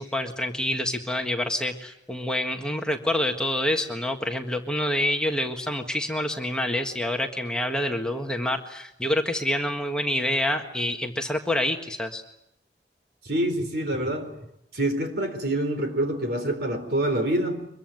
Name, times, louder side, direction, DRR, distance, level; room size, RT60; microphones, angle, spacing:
voice 1, 0.0-12.2, left 1 dB, 5° left, 3 dB, 1.6 m, -27 dB
voice 2, 13.2-14.4 14.7-17.7, right 1 dB, 60° right, 7 dB, 4.0 m, -26 dB
24.5 x 22.5 x 9.3 m, 0.79 s
head